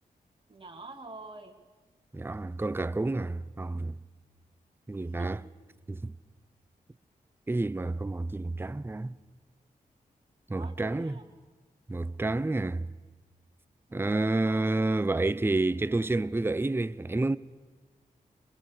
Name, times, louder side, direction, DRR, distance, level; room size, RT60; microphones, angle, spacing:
voice 1, 0.5-1.6 5.1-5.4 10.5-11.2 13.9-14.2, right 2 dB, 35° right, 2.3 m, -46 dB
voice 2, 2.1-3.9 4.9-5.4 5.9-6.1 7.5-9.2 10.5-11.1 11.9-12.9 13.9-17.4, right 2 dB, 15° right, 0.6 m, -29 dB
22.5 x 21.0 x 6.7 m
cardioid pair, 50°, 16 cm